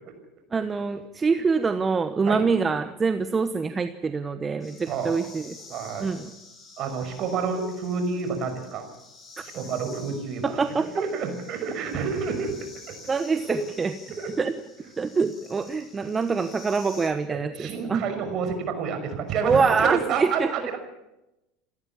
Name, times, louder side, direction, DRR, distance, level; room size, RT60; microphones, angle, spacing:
voice 1, 0.5-5.6 6.0-6.3 10.4-10.9 13.1-13.9 14.4-14.6 15.0-18.0 19.4-20.5, right 4 dB, 25° right, 10 dB, 1.1 m, -25 dB
sound 1, 4.6-17.1, left 3 dB, 20° left, 7.2 m, -49 dB
voice 2, 5.7-6.1 6.8-8.9 9.4-10.5 10.8-12.5 12.9-13.0 13.5-13.6 14.2-14.3 17.3-20.8, right 5 dB, 50° right, 6 dB, 5.7 m, -29 dB
28.5 x 13.5 x 7.2 m, 0.91 s
hypercardioid pair, 75°, 0 cm